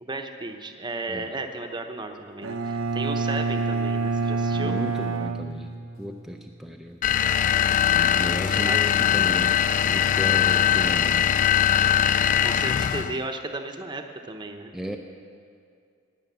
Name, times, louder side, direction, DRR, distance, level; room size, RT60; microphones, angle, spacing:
voice 1, 0.0-4.8 8.6-8.8 12.4-14.7, right 2 dB, 20° right, 5 dB, 0.9 m, -34 dB
Bowed string instrument, 2.4-6.3, right 4 dB, 80° right, 0.9 m, -27 dB
voice 2, 4.5-7.0 8.0-11.3 14.7-15.0, equal, ahead, 2 dB, 0.6 m, -35 dB
sound 1, 7.0-13.2, left 10 dB, 40° left, 0.3 m, -21 dB
19.0 x 6.6 x 8.1 m, 2.3 s
head